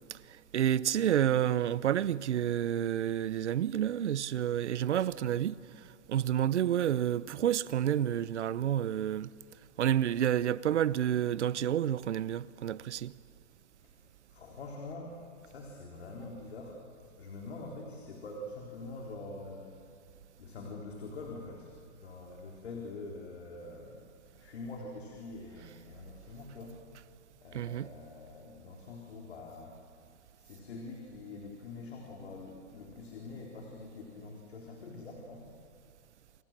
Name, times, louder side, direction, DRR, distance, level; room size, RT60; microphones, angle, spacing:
voice 1, 0.1-5.8 6.1-9.3 9.8-13.1 27.5-27.9, right 10 dB, 70° right, 0.8 m, -29 dB
voice 2, 14.3-16.8 17.2-19.8 20.4-24.0 24.3-26.8 27.4-29.8 30.4-35.5, left 3 dB, 60° left, 3.9 m, -45 dB
28.5 x 27.0 x 7.5 m
hypercardioid pair, 180°, 37 cm